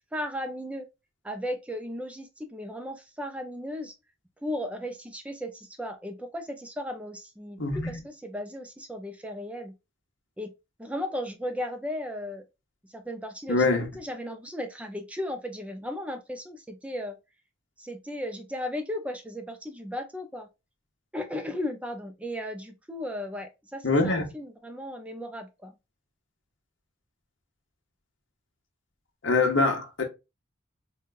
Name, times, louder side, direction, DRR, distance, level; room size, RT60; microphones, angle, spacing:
voice 1, 0.1-0.9 1.2-3.9 4.4-9.7 10.4-10.5 10.8-12.4 12.9-17.2 17.8-20.5 21.1-25.7, left 1 dB, 5° right, 0.5 m, -36 dB
voice 2, 7.6-8.0 13.5-13.9 23.8-24.3 29.2-30.0, left 3 dB, 70° left, 1.1 m, -24 dB
4.6 x 2.3 x 2.5 m
head